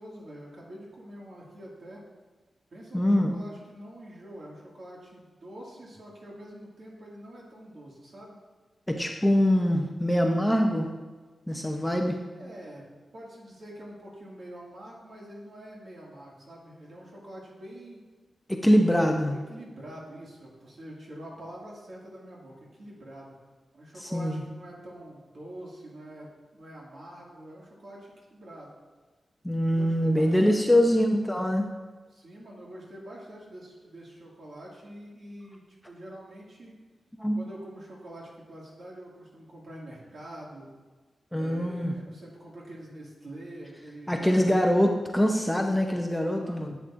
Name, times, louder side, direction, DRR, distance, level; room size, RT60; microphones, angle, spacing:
voice 1, 0.0-2.0 2.7-8.4 12.3-12.9 13.1-18.0 18.8-18.9 19.3-23.3 23.7-28.7 29.7-31.0 32.1-36.7 37.3-40.7 41.3-44.7 45.9-46.0 46.3-46.7, right 1 dB, 55° right, -4 dB, 2.1 m, -45 dB
voice 2, 2.9-3.3 8.9-10.9 11.5-12.2 18.5-19.4 24.0-24.4 29.4-31.7 37.1-37.4 41.3-41.9 44.1-46.8, equal, 5° left, 2 dB, 0.5 m, -24 dB
11.0 x 8.1 x 2.6 m, 1.3 s
wide cardioid pair, 170°, 0 cm